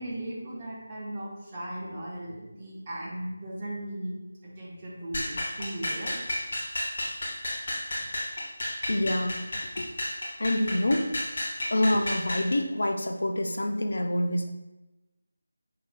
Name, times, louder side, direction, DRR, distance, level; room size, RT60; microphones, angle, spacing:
voice 1, 0.0-6.2 8.0-8.1, right 1 dB, 25° right, -5 dB, 1.0 m, -37 dB
sound 1, 5.1-12.5, left 1 dB, 45° left, 1.0 m, -32 dB
voice 2, 8.9-9.4 9.8-9.9 10.4-11.4 11.7-14.5, left 1 dB, 65° left, 4 dB, 0.5 m, -27 dB
5.7 x 2.9 x 2.2 m, 1.0 s
figure-of-eight pair, 160°, 0 cm